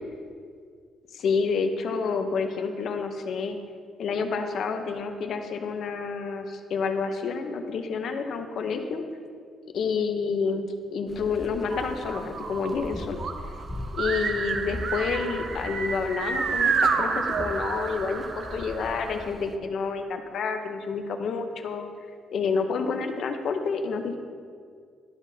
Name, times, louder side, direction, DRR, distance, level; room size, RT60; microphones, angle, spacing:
voice 1, 1.1-3.6 4.0-9.0 9.7-13.2 13.9-21.9 22.3-24.2, left 5 dB, 65° left, 6 dB, 0.7 m, -29 dB
sound 1, 11.1-19.6, left 1 dB, 5° left, 0.5 m, -40 dB
sound 2, 11.7-19.3, right 5 dB, 60° right, 0.6 m, -30 dB
12.0 x 6.1 x 2.7 m, 2.1 s
cardioid pair, 90°, 0 cm